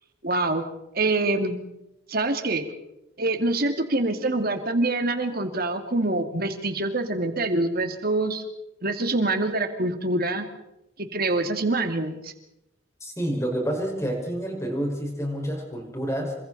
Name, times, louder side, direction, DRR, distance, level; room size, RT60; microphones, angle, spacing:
voice 1, 0.2-0.6 0.9-1.6 2.1-2.7 3.2-8.4 8.8-10.5 11.0-12.3, right 2 dB, 50° right, 7 dB, 2.4 m, -25 dB
voice 2, 13.0-16.4, right 1 dB, 15° left, 1 dB, 5.3 m, -28 dB
28.0 x 24.5 x 4.2 m, 0.87 s
head